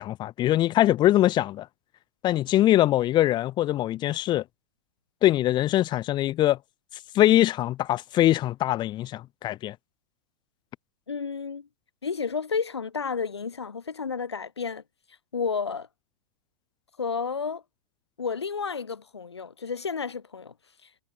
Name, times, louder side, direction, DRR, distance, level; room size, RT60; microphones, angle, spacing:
voice 1, 0.0-1.7 2.2-4.4 5.2-6.6 7.1-9.8, left 14 dB, 35° left, 3.7 m, -22 dB
voice 2, 11.1-11.7 12.0-14.8 15.3-15.9 17.0-17.6 18.2-20.5, left 5 dB, 90° left, 1.7 m, -31 dB
hypercardioid pair, 105°, 14 cm